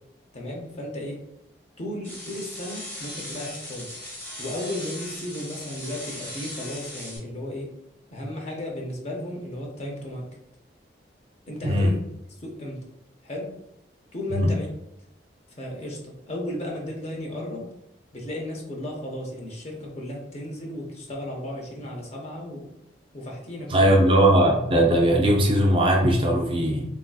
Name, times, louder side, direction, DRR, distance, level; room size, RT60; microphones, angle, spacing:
voice 1, 0.3-1.2 1.8-3.9 4.4-7.8 8.1-10.3 11.5-11.9 12.4-12.8 13.2-13.5 14.1-14.7 15.5-17.7 18.1-22.7 23.1-24.0, left 1 dB, 35° left, 0 dB, 0.6 m, -34 dB
sound 1, 2.0-7.2, left 1 dB, 10° left, 0.9 m, -38 dB
voice 2, 11.6-11.9 14.3-14.5 23.7-26.9, right 1 dB, 25° right, 0 dB, 0.4 m, -19 dB
3.2 x 2.6 x 2.2 m, 0.84 s
head